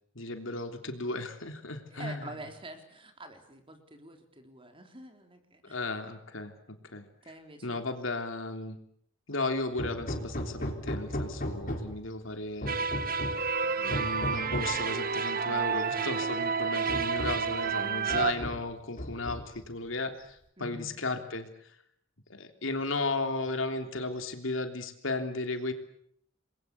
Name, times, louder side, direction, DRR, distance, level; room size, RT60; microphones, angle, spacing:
voice 1, 0.1-2.3 5.6-6.5 6.9-7.0 7.6-8.8 9.3-12.8 13.8-21.5 22.3-25.7, left 2 dB, 70° left, 6 dB, 3.3 m, -35 dB
voice 2, 1.9-5.9 7.2-7.9 20.6-20.9, right 2 dB, 25° right, 6 dB, 3.9 m, -47 dB
Hammer, 9.8-12.1 12.6-13.5 13.9-14.8 15.9-16.0 16.4-16.5 16.9-17.5 18.1-18.7 19.0-19.7, equal, 45° left, 4.6 m, -36 dB
sound 1, 12.7-18.3, right 5 dB, 45° right, 1.4 m, -30 dB
28.5 x 22.0 x 8.5 m, 0.70 s
head